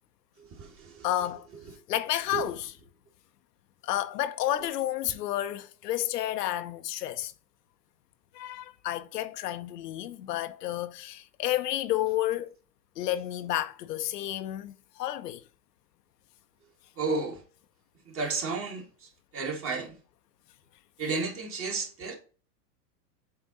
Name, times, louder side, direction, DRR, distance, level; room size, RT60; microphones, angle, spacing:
voice 1, 0.4-1.1 2.3-2.5 17.0-17.4 18.1-19.9 21.0-22.1, right 4 dB, 25° right, 1.7 m, -33 dB
voice 2, 1.0-1.5 1.9-2.7 3.8-7.3 8.3-12.5 13.0-15.4, left 13 dB, 75° left, 0.7 m, -31 dB
7.6 x 3.6 x 4.1 m
hypercardioid pair, 125°, 48 cm